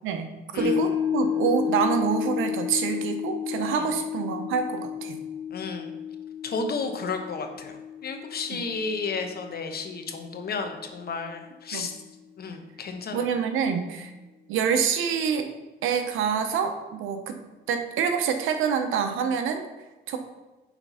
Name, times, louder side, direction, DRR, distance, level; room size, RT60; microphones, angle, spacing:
voice 1, 0.0-5.2 8.5-8.6 11.7-11.9 13.1-14.1 14.5-15.5 15.8-17.4 17.7-19.7 20.1-20.2, right 7 dB, 90° right, 7 dB, 0.8 m, -26 dB
voice 2, 0.5-0.9 3.7-3.9 5.5-5.9 6.4-11.9 12.4-13.3, left 4 dB, 50° left, 5 dB, 1.0 m, -33 dB
sound 1, 0.6-11.0 11.3-11.4, left 8 dB, 50° right, 1.4 m, -32 dB
5.8 x 4.4 x 5.5 m, 1.1 s
cardioid pair, 90°, 20 cm